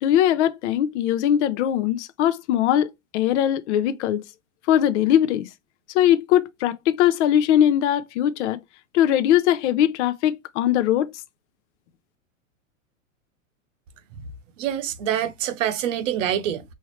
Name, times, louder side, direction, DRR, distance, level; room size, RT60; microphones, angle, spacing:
voice 1, 0.0-4.2 4.7-5.5 5.9-8.6 8.9-11.1, left 11 dB, 60° left, 0.7 m, -20 dB
voice 2, 14.6-16.6, right 10 dB, 65° right, 0.9 m, -25 dB
4.4 x 3.2 x 3.0 m
hypercardioid pair, 100°, 41 cm